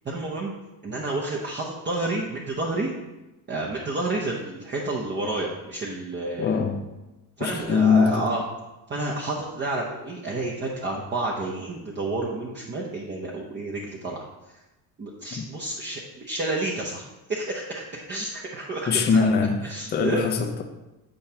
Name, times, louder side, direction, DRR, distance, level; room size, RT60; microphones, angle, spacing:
voice 1, 0.0-0.5 0.8-2.9 3.5-6.6 7.4-8.4 8.9-14.2 15.0-17.0 17.3-19.2 19.6-20.3, right 2 dB, 25° right, 0.8 m, -30 dB
voice 2, 6.4-6.9 7.4-8.4 15.4-15.5 18.9-19.6 19.9-20.6, left 5 dB, 25° left, 0.5 m, -22 dB
8.8 x 4.5 x 2.8 m
cardioid pair, 125°, 42 cm